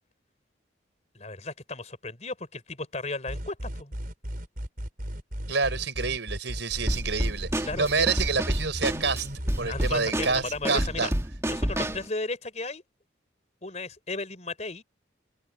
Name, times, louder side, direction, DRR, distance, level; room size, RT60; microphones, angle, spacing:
voice 1, 1.1-4.0 7.6-8.1 9.6-11.1 11.5-12.8 13.6-14.8, left 3 dB, 35° left, 4.6 m, -35 dB
sound 1, 3.3-10.1, equal, 50° right, 4.8 m, -36 dB
voice 2, 5.5-9.3 9.6-11.1, right 4 dB, 70° right, 5.0 m, -28 dB
Drum kit / Snare drum, 6.9-12.1, right 1 dB, 15° right, 1.9 m, -30 dB
head